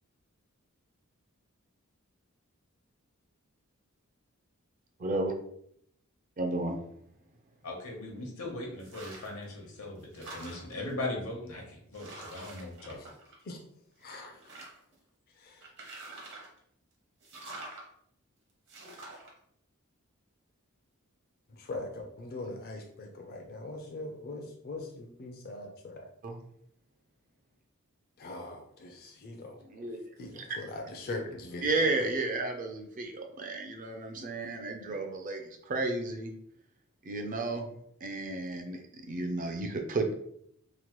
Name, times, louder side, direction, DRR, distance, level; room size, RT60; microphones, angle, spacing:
voice 1, 5.0-5.3 6.4-6.8 26.2-26.4 29.7-30.0 31.6-36.3 37.0-37.7 38.0-40.1, right 2 dB, 40° right, 5 dB, 0.4 m, -32 dB
voice 2, 7.6-13.0, left 2 dB, 75° left, 0 dB, 0.9 m, -39 dB
sound 1, 8.8-9.4 9.8-10.9 11.5-11.6 11.9-13.7 14.0-14.9 15.6-16.6 17.2-17.8 18.7-19.3, right 2 dB, 55° right, 0.8 m, -46 dB
voice 3, 14.0-14.6 15.3-15.7 21.5-26.1 28.2-29.6 30.2-31.9, left 2 dB, 45° left, 1 dB, 0.4 m, -42 dB
3.0 x 2.1 x 3.0 m, 0.71 s
head